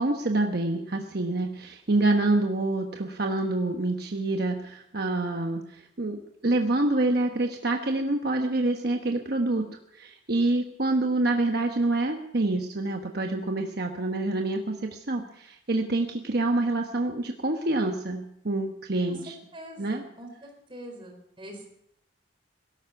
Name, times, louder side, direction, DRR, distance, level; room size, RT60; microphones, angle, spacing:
voice 1, 0.0-9.7 9.9-19.3 19.8-20.0, right 2 dB, 55° right, 3 dB, 1.1 m, -27 dB
voice 2, 19.5-21.7, equal, 25° right, 2 dB, 4.2 m, -44 dB
17.0 x 13.0 x 5.9 m, 0.74 s
head